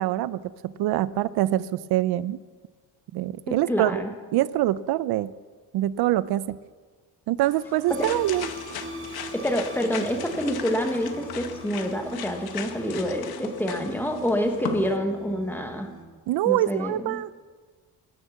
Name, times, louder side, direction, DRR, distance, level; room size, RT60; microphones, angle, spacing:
voice 1, 0.0-2.4 3.1-4.0 4.3-5.3 5.7-6.6 7.3-8.5 16.3-17.3, right 14 dB, 70° right, 17 dB, 0.5 m, -24 dB
voice 2, 3.5-4.1 7.9-8.1 9.3-15.9 16.4-17.2, equal, 5° left, 4 dB, 1.2 m, -27 dB
sound 1, 7.4-15.0, left 9 dB, 65° left, 1.1 m, -39 dB
sound 2, 7.9-16.0, right 2 dB, 30° right, 1.6 m, -41 dB
18.5 x 7.3 x 7.2 m, 1.5 s
cardioid pair, 165°, 40 cm